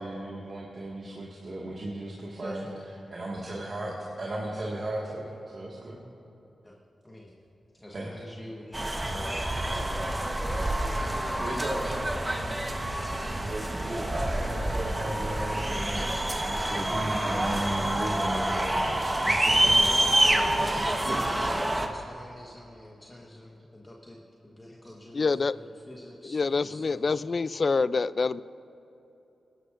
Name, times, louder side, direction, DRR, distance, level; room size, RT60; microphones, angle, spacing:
voice 1, 0.0-2.7 3.1-6.0 7.9-8.2 11.4-12.0 13.4-19.3 19.6-19.9 20.6-21.5, right 1 dB, 55° right, -5 dB, 1.8 m, -35 dB
voice 2, 2.4-2.8 6.6-6.8 7.0-7.3 7.7-9.6 12.3-12.5 19.9-27.2, left 1 dB, 20° left, -2 dB, 1.3 m, -45 dB
sound 1, 8.7-21.9, right 1 dB, 20° right, 1.1 m, -27 dB
voice 3, 25.1-25.5 26.3-28.4, left 4 dB, 55° left, 17 dB, 0.3 m, -26 dB
22.0 x 11.5 x 2.5 m, 2.9 s
cardioid pair, 55°, 0 cm